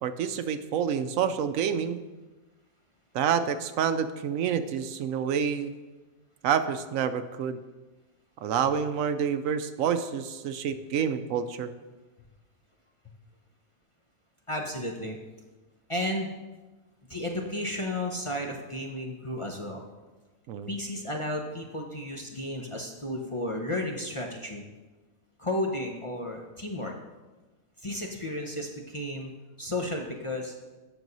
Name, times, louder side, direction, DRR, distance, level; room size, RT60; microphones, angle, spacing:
voice 1, 0.0-2.0 3.1-5.7 6.4-7.6 8.4-11.7 20.5-20.7, right 7 dB, 75° right, 11 dB, 1.0 m, -28 dB
voice 2, 14.5-15.2 15.9-16.4 17.1-19.8 20.7-24.6 25.4-26.9 27.8-29.3 29.6-30.5, left 1 dB, 30° left, 1 dB, 0.7 m, -33 dB
9.1 x 6.3 x 5.3 m, 1.2 s
omnidirectional pair, 1.4 m